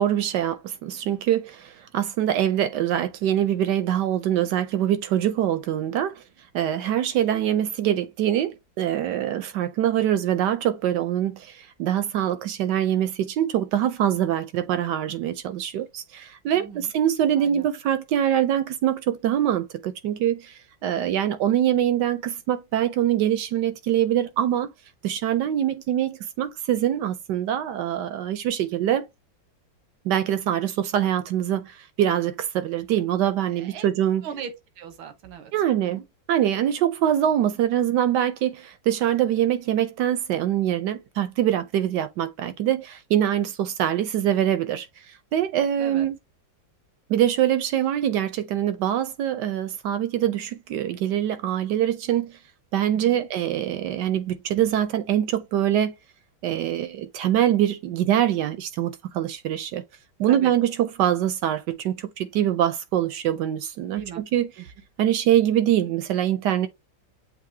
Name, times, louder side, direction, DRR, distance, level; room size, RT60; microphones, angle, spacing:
voice 1, 0.0-6.2 6.5-24.7 25.0-29.1 30.0-34.2 35.5-36.0 36.3-44.9 45.3-46.2 47.1-52.4 52.7-55.9 56.4-59.8 60.2-64.5 65.0-66.7, right 11 dB, 70° right, 1.1 m, -24 dB
voice 2, 16.5-16.9 17.3-17.7 33.5-33.9 34.2-36.0 45.8-46.1 52.9-53.2 60.3-60.5 63.9-64.2 64.6-64.7, right 7 dB, 90° right, 1.8 m, -39 dB
7.4 x 2.7 x 2.7 m
omnidirectional pair, 2.2 m